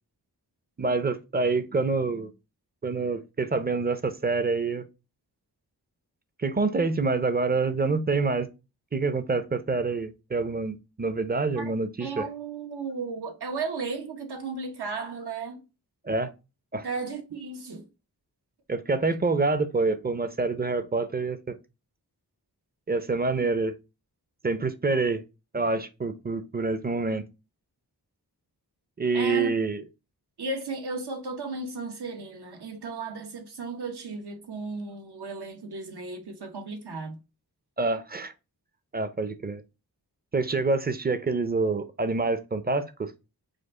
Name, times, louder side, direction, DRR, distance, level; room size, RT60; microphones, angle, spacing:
voice 1, 0.8-2.3 2.8-4.8 6.4-8.5 8.9-12.2 16.0-16.3 16.7-16.9 18.7-21.5 22.9-23.7 24.4-25.2 25.5-27.3 29.0-29.8 37.8-38.3 38.9-39.6 40.3-43.1, right 3 dB, 25° right, 0.5 m, -26 dB
voice 2, 12.0-15.6 16.8-17.8 29.1-29.5 30.4-37.2, right 3 dB, 85° right, 1.1 m, -35 dB
5.1 x 2.4 x 3.6 m
wide cardioid pair, 110°, 38 cm